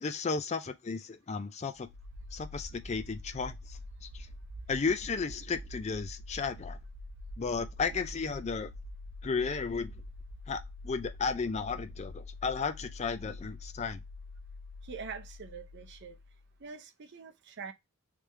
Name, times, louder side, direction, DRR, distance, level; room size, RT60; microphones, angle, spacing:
voice 1, 0.0-1.9 2.3-3.8 4.1-4.3 4.7-6.8 7.4-8.7 9.2-9.9 10.5-14.0, left 5 dB, 30° left, 0.4 m, -34 dB
sound 1, 1.8-16.5, left 2 dB, 70° right, 0.9 m, -46 dB
voice 2, 14.8-16.2 16.6-17.7, right 5 dB, 50° right, 0.6 m, -44 dB
3.4 x 3.3 x 3.0 m
head